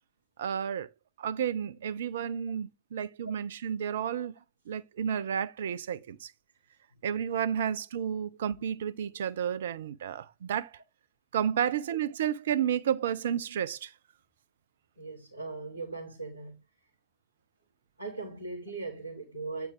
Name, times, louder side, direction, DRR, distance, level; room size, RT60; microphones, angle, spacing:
voice 1, 0.4-0.9 1.2-4.3 4.7-6.3 7.0-10.7 11.3-13.9, right 9 dB, 60° right, 0.5 m, -31 dB
voice 2, 15.0-16.6 18.0-19.7, right 3 dB, 85° left, 1.8 m, -39 dB
8.6 x 4.6 x 3.2 m
figure-of-eight pair, 90°, 0 cm